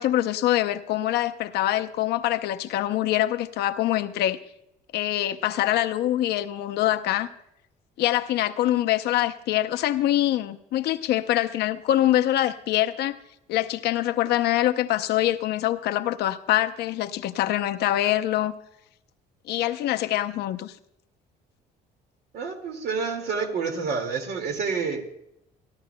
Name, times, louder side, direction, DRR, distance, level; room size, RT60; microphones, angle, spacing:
voice 1, 0.0-4.4 4.9-7.3 8.0-13.2 13.5-18.5 19.5-20.7, left 13 dB, 75° left, 9 dB, 0.7 m, -24 dB
voice 2, 22.3-25.2, right 5 dB, 70° right, 4 dB, 2.2 m, -29 dB
30.0 x 11.5 x 2.2 m, 0.80 s
cardioid pair, 110°, 17 cm